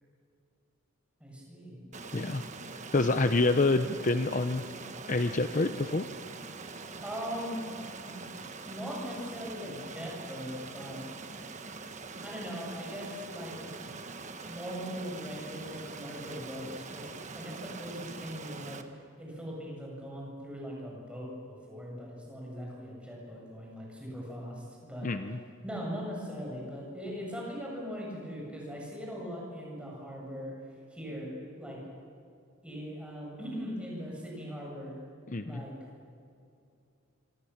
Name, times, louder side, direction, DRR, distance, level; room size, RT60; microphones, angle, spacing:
voice 1, 1.2-1.8 7.0-7.7 8.0-8.1 8.6-11.0 12.2-13.5 13.8-13.9 14.5-17.0 17.3-18.8 19.2-25.1 25.6-30.5 30.9-31.8 32.6-35.0 35.4-35.7, equal, 5° right, -3 dB, 7.6 m, -40 dB
Stream, 1.9-18.8, right 3 dB, 35° right, 1.4 m, -43 dB
voice 2, 2.9-4.6 5.1-6.1 25.0-25.4 35.3-35.6, left 2 dB, 35° left, 9 dB, 0.7 m, -27 dB
26.5 x 25.5 x 7.3 m, 2.5 s
head